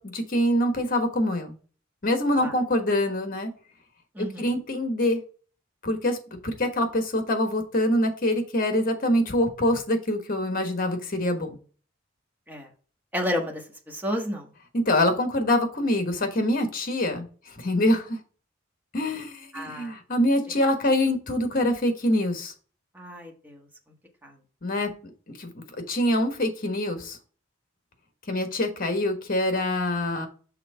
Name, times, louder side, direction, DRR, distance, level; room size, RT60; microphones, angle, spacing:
voice 1, 0.0-1.6 2.0-3.5 4.4-5.2 5.8-6.2 6.4-11.6 14.9-17.3 17.6-18.2 18.9-22.5 24.6-24.9 25.4-27.2 28.3-30.3, left 1 dB, 45° left, 6 dB, 1.3 m, -25 dB
voice 2, 4.1-4.6 12.5-12.7 13.1-14.5 19.5-19.9 20.5-20.6 22.9-23.7 24.2-24.4, left 1 dB, 10° right, 0 dB, 1.4 m, -32 dB
5.8 x 3.6 x 5.5 m, 0.39 s
head